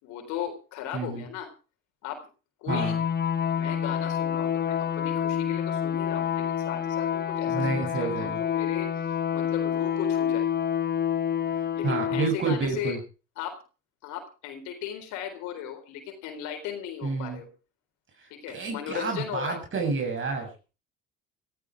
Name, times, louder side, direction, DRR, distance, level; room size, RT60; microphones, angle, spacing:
voice 1, 0.0-1.5 2.0-2.2 2.6-3.0 3.6-9.1 9.3-10.5 11.8-13.0 13.4-13.6 14.0-17.5 18.3-19.5, left 9 dB, 75° left, 6 dB, 4.1 m, -37 dB
voice 2, 0.9-1.3 2.7-3.0 7.5-8.4 11.8-13.0 17.0-17.4 18.5-20.5, right 4 dB, 40° right, 3 dB, 7.3 m, -29 dB
sound 1, 2.7-12.3, left 8 dB, 35° left, 1.2 m, -28 dB
17.0 x 14.5 x 4.7 m, 0.35 s
supercardioid pair, 75°, 29 cm